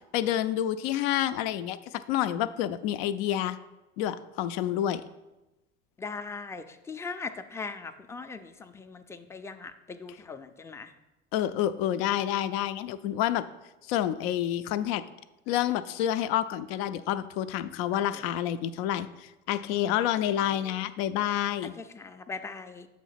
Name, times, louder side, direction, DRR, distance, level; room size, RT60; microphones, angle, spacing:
voice 1, 0.1-3.6 4.0-5.0 11.3-13.5 13.9-15.0 15.5-21.8, left 11 dB, 70° left, 13 dB, 0.5 m, -28 dB
voice 2, 6.0-10.9 18.1-18.2 20.6-20.7 21.8-22.9, left 4 dB, 10° left, 8 dB, 0.4 m, -40 dB
7.4 x 3.1 x 5.7 m, 1.0 s
hypercardioid pair, 80°, 30 cm